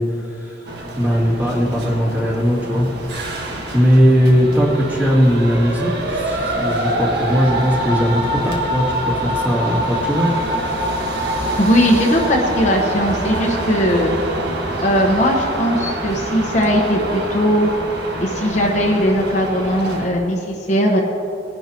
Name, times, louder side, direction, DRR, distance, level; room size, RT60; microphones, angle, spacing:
voice 1, 0.0-2.9 3.7-10.3, equal, 10° right, -6 dB, 2.4 m, -18 dB
sound 1, 0.7-20.1, right 1 dB, 60° right, 1.4 m, -25 dB
voice 2, 11.6-14.1 14.8-17.7 18.2-21.0, equal, 40° left, -1 dB, 1.1 m, -18 dB
20.5 x 11.0 x 2.9 m, 2.8 s
head